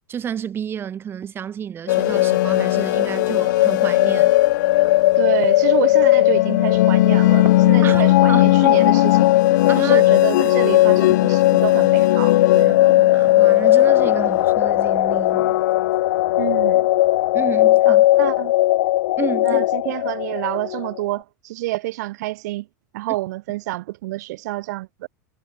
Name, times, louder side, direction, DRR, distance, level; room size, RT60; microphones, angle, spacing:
voice 1, 0.1-4.3 7.8-8.5 9.7-10.1 10.4-10.5 12.7-15.6 17.3-18.1 19.2-19.6, right 8 dB, 25° right, 4.6 m, -30 dB
sound 1, 1.9-21.0, left 16 dB, 75° left, 0.3 m, -16 dB
voice 2, 5.2-9.3 9.8-12.8 16.4-16.9 17.9-18.5 19.4-22.7 22.9-25.1, right 18 dB, 65° right, 2.2 m, -28 dB
sound 2, 6.3-13.5, right 18 dB, 40° right, 6.5 m, -41 dB
supercardioid pair, 140°, 10 cm